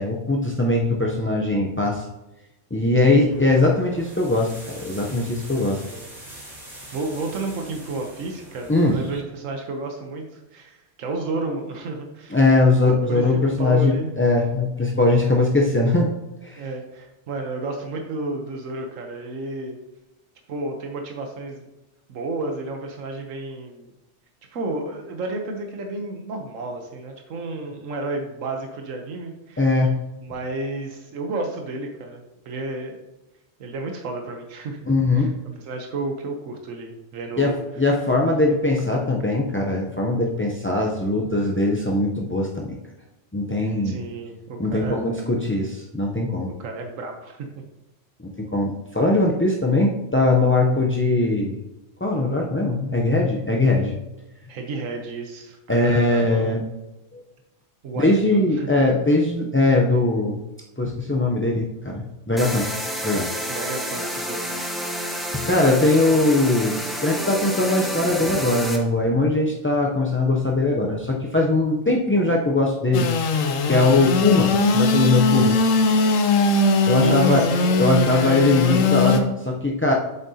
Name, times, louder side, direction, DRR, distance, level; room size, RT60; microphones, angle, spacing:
voice 1, 0.0-2.1 2.7-4.5 4.8-5.8 8.7-9.0 12.3-16.1 16.4-16.6 29.6-30.0 34.9-35.3 37.4-42.8 43.3-44.0 44.6-46.5 48.2-51.6 52.0-54.0 55.7-56.6 57.1-57.2 58.0-60.4 60.8-62.7 63.0-63.3 65.3-66.7 67.0-73.1 73.7-75.6 76.9-77.4 77.8-79.9, left 2 dB, 20° left, -2 dB, 0.3 m, -20 dB
voice 2, 3.0-3.3 5.8-6.1 6.9-12.4 12.8-14.1 16.6-19.8 20.5-21.7 22.1-23.9 24.5-29.6 30.2-33.0 33.6-34.9 35.2-35.3 35.6-37.6 38.9-39.1 43.8-45.0 46.5-47.5 54.5-56.5 57.8-58.7 63.5-64.4 77.0-77.9 78.1-78.9, right 2 dB, 80° right, 3 dB, 1.3 m, -32 dB
sound 1, 3.3-9.2, right 1 dB, 40° right, 3.3 m, -43 dB
sound 2, 62.4-68.8, equal, ahead, 0.9 m, -29 dB
Engine / Sawing, 72.9-79.2, left 3 dB, 90° left, 1.1 m, -20 dB
7.9 x 7.4 x 2.8 m, 0.97 s
omnidirectional pair, 1.3 m